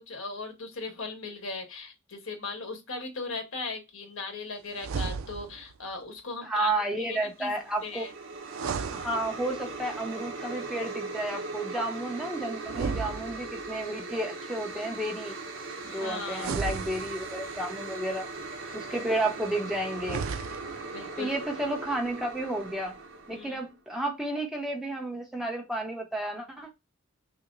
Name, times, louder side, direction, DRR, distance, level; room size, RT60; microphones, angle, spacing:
voice 1, 0.0-6.7 7.0-7.5 7.8-8.1 15.7-16.6 20.9-21.3 23.3-23.6, left 3 dB, 80° left, 3 dB, 1.4 m, -38 dB
sound 1, 4.8-5.7 8.4-9.8 12.6-13.8 16.3-17.6 19.9-20.9, right 5 dB, 85° right, 0.4 m, -35 dB
voice 2, 6.4-8.0 8.9-15.4 15.8-18.3 18.7-20.2 21.2-22.9 23.3-26.7, right 1 dB, ahead, 1 dB, 0.7 m, -32 dB
sound 2, 7.3-23.7, right 3 dB, 70° right, 1.0 m, -39 dB
5.9 x 2.1 x 3.9 m, 0.23 s
head